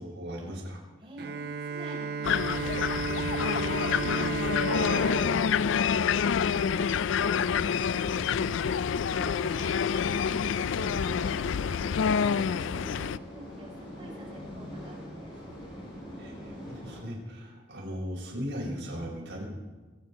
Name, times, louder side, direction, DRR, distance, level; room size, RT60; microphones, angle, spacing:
voice 1, 0.0-0.8 16.2-19.4, equal, 70° right, -3 dB, 5.6 m, -38 dB
voice 2, 1.0-15.3, equal, 25° right, -4 dB, 5.1 m, -48 dB
Bowed string instrument, 1.2-6.9, right 4 dB, 50° right, 0.5 m, -34 dB
sound 1, 2.2-13.2, left 7 dB, 75° left, 0.4 m, -27 dB
sound 2, 7.2-17.0, equal, 25° left, 5.1 m, -44 dB
23.0 x 9.4 x 5.4 m, 1.3 s
head